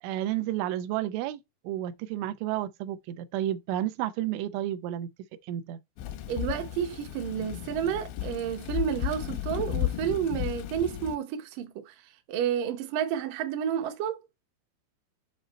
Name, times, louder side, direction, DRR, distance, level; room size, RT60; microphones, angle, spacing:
voice 1, 0.0-5.1 5.5-5.8, right 13 dB, 90° right, 3.2 m, -31 dB
Thunder / Rain, 6.0-11.2, left 13 dB, 85° left, 3.3 m, -34 dB
voice 2, 6.3-12.0 12.3-14.2, right 9 dB, 70° right, 2.0 m, -30 dB
7.9 x 3.8 x 4.2 m
omnidirectional pair, 5.3 m